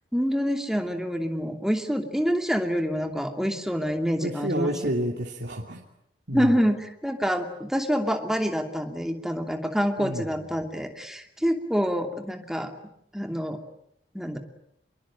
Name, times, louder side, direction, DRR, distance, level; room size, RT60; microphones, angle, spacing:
voice 1, 0.1-4.7 6.3-12.7 13.1-13.6 14.1-14.4, equal, 5° right, 5 dB, 2.7 m, -26 dB
voice 2, 4.2-5.8 6.3-6.6 10.0-10.3, right 1 dB, 70° right, 1 dB, 2.9 m, -29 dB
26.5 x 23.0 x 8.8 m, 0.74 s
head